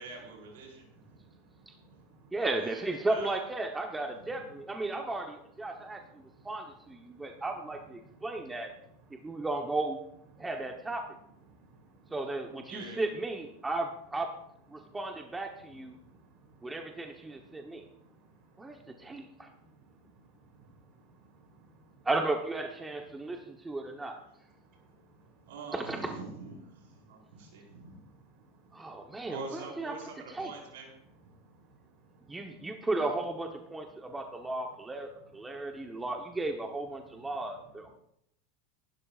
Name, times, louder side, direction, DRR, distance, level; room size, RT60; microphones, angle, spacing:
voice 1, 0.0-1.2 2.4-2.8 3.1-3.4 4.1-4.5 12.7-13.0 15.6-15.8 20.6-20.7 25.5-28.0 29.3-30.9 31.2-31.6, right 4 dB, 85° right, -1 dB, 4.8 m, -45 dB
voice 2, 0.6-2.4 4.8-5.0 5.6-7.5 8.0-9.5 10.3-10.5 11.5-12.1 14.7-15.0 15.5-22.1 23.1-25.5 26.8-29.3 31.3-32.7 33.9-34.2 35.1-36.1 37.0-37.5, right 3 dB, 45° right, 0 dB, 6.6 m, -61 dB
voice 3, 2.3-6.0 6.4-8.8 9.1-10.0 10.4-11.2 12.1-14.4 14.7-15.9 16.6-17.8 18.6-19.5 22.0-24.2 25.7-26.2 28.7-30.0 30.3-30.5 32.3-37.9, right 2 dB, 10° right, 3 dB, 1.0 m, -35 dB
22.0 x 12.0 x 2.5 m, 0.74 s
supercardioid pair, 135°, 0 cm